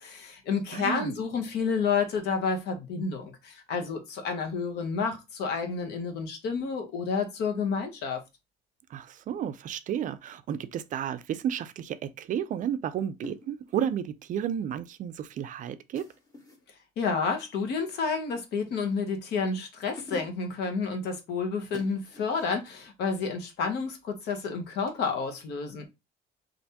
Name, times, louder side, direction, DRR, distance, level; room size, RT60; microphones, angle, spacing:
voice 1, 0.0-8.2 17.0-25.9, left 5 dB, 75° left, 0.9 m, -30 dB
voice 2, 0.7-1.1 8.9-16.1, right 9 dB, 50° right, 0.4 m, -32 dB
sound 1, 13.2-13.8 15.9-16.7 18.5-19.1 19.7-19.8 20.0-20.6 21.7-22.7 24.8-25.0, left 2 dB, 20° left, 1.1 m, -47 dB
3.3 x 2.5 x 2.8 m
cardioid pair, 110°, 17 cm